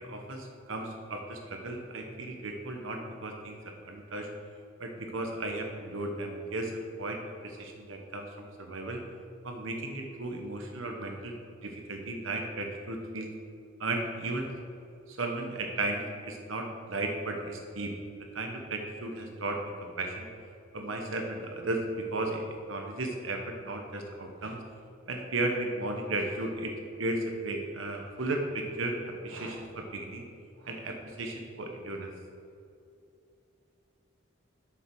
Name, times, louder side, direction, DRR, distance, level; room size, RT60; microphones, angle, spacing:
voice 1, 0.0-4.3 4.8-6.7 7.0-9.0 9.4-11.3 11.6-13.3 13.8-14.5 15.1-17.9 18.3-20.3 20.7-22.4 22.7-24.6 25.1-26.7 27.0-29.0 29.2-30.2 30.6-32.1, right 2 dB, 75° right, 2 dB, 1.0 m, -35 dB
7.2 x 6.9 x 6.1 m, 2.6 s
head